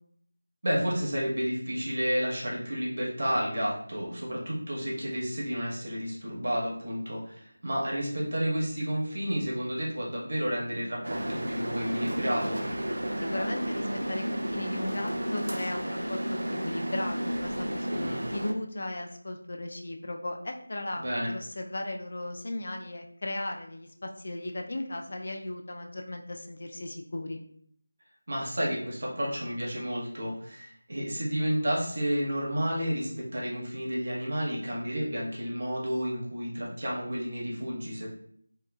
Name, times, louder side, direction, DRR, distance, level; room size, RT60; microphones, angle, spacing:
voice 1, 0.6-12.6 17.9-18.2 21.0-21.3 28.3-38.1, equal, 50° right, -4 dB, 0.9 m, -31 dB
sound 1, 11.0-18.5, equal, 85° right, 0.4 m, -32 dB
voice 2, 13.2-27.4, left 1 dB, 45° left, 4 dB, 0.3 m, -36 dB
2.9 x 2.2 x 2.2 m, 0.64 s
figure-of-eight pair, 175°, 0 cm